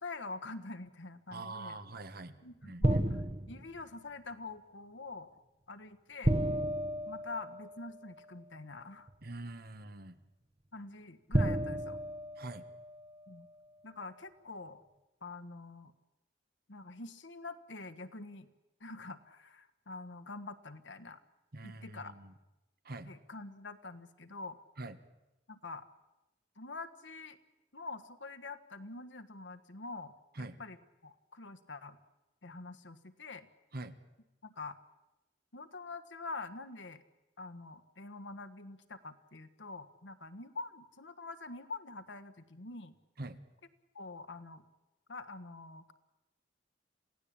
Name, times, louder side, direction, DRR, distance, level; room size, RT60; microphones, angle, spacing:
voice 1, 0.0-1.8 2.4-3.2 3.5-5.4 5.7-6.4 7.1-9.1 10.7-12.0 13.3-13.5 13.8-14.8 15.2-15.9 16.7-18.5 18.8-21.2 21.6-22.1 23.1-24.6 25.5-25.9 26.6-27.4 27.7-30.8 31.0-32.0 32.4-33.5 34.4-34.8 35.5-37.0 37.4-42.9 43.9-44.6 45.1-45.9, left 3 dB, 75° left, 10 dB, 1.5 m, -46 dB
voice 2, 1.3-2.4 2.6-3.0 9.2-10.2 12.4-12.6 21.5-22.3 22.8-23.1 24.8-25.0 30.3-30.6 33.7-34.0 43.2-43.4, right 2 dB, 55° right, 11 dB, 1.5 m, -44 dB
sound 1, 2.8-3.8 6.2-7.9 9.1-9.2 11.3-13.0, right 1 dB, 35° right, 1.4 m, -32 dB
27.5 x 17.0 x 8.8 m, 0.99 s
head